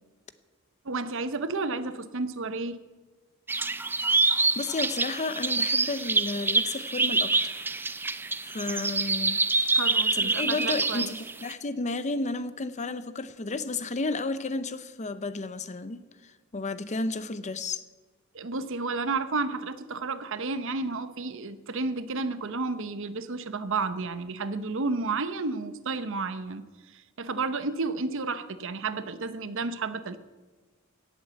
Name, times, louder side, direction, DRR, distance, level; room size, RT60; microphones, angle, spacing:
voice 1, 0.8-2.8 9.7-11.1 18.3-26.6 26.9-30.2, right 3 dB, 60° right, 0.8 m, -31 dB
sound 1, 3.5-11.5, right 3 dB, 10° right, 0.4 m, -26 dB
voice 2, 4.3-7.7 8.4-9.4 9.7-9.8 10.1-17.8, left 3 dB, 35° left, 0.7 m, -32 dB
17.0 x 8.1 x 7.6 m
head